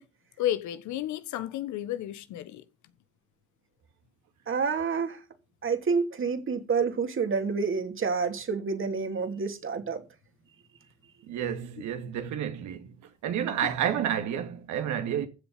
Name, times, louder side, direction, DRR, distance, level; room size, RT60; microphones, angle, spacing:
voice 1, 0.4-2.6, left 12 dB, 60° left, 1.2 m, -32 dB
voice 2, 4.5-5.2 5.6-10.0, right 5 dB, 40° right, 2.9 m, -28 dB
voice 3, 11.2-12.9 13.2-15.3, right 9 dB, 60° right, 2.2 m, -30 dB
15.0 x 7.1 x 5.4 m
hypercardioid pair, 55°, 32 cm